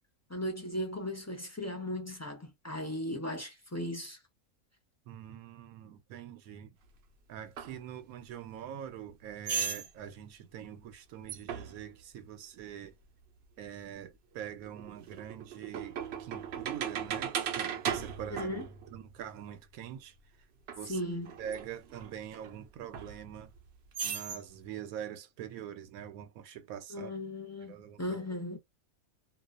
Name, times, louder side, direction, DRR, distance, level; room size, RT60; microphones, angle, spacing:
voice 1, 0.3-4.2 18.3-18.7 20.9-21.4 26.9-28.6, left 1 dB, 20° left, 0.4 m, -37 dB
voice 2, 5.1-6.8 7.3-12.9 13.6-18.5 18.9-20.1 20.8-21.0 21.4-23.5 24.0-27.1 27.6-28.0, right 9 dB, 80° right, 1.0 m, -44 dB
sound 1, 7.6-7.7 9.5-9.9 11.3-11.8 13.9-14.0 14.7-19.3 20.7-20.8 21.3-22.5 22.9-23.6 23.9-24.4, right 7 dB, 65° right, 0.7 m, -37 dB
2.3 x 2.2 x 2.4 m
omnidirectional pair, 1.5 m